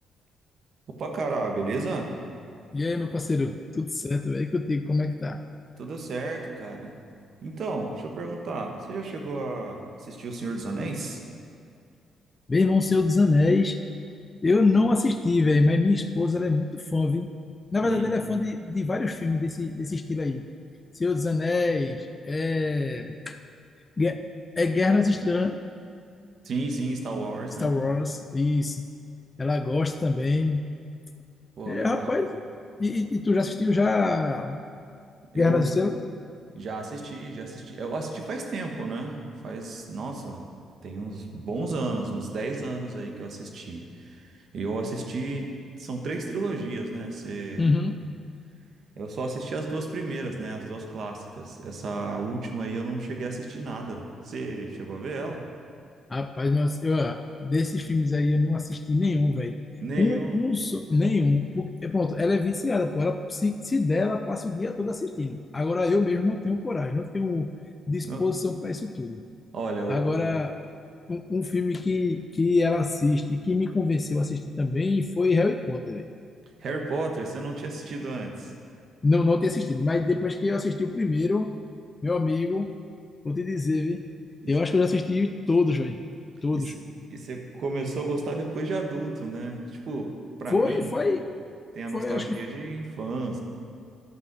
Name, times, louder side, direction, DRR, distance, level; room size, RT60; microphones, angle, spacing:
voice 1, 0.9-2.1 5.8-7.0 7.4-11.2 17.7-18.1 26.4-27.7 31.6-32.1 35.3-35.7 36.5-39.2 39.4-40.5 40.8-45.5 45.8-47.7 49.0-55.4 59.8-60.5 68.0-68.2 69.5-70.3 76.6-78.5 80.1-80.2 84.4-84.6 86.5-86.8 87.1-90.1 90.4-90.9 91.7-93.4, right 3 dB, 60° right, 2 dB, 1.4 m, -32 dB
voice 2, 2.7-5.4 12.5-13.8 14.4-17.3 17.7-20.4 20.9-23.4 24.0-24.2 24.6-25.6 27.6-28.8 29.4-30.7 31.7-32.3 32.8-34.6 35.3-36.0 47.6-48.0 56.1-59.6 60.0-67.5 67.9-69.2 69.9-70.5 71.1-76.1 79.0-81.5 82.0-82.8 83.2-84.0 84.5-86.0 86.4-86.7 90.5-91.3 91.9-92.4, left 3 dB, 25° left, 7 dB, 0.4 m, -25 dB
11.5 x 5.4 x 6.2 m, 2.4 s
cardioid pair, 90°, 0 cm